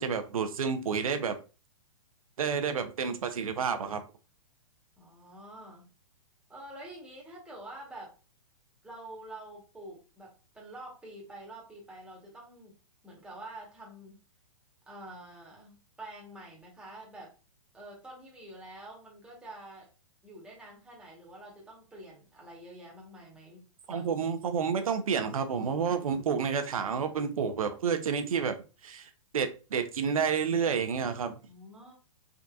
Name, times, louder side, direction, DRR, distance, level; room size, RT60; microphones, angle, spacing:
voice 1, 0.0-1.4 2.4-4.0 23.9-28.6 28.8-31.3, right 6 dB, 90° right, 0.5 m, -30 dB
voice 2, 5.0-5.9 6.5-8.1 8.8-12.7 13.0-14.2 14.9-17.3 17.7-19.9 20.2-24.1 31.5-31.9, right 1 dB, 5° right, 1.0 m, -47 dB
3.6 x 2.6 x 2.3 m
hypercardioid pair, 140°, 17 cm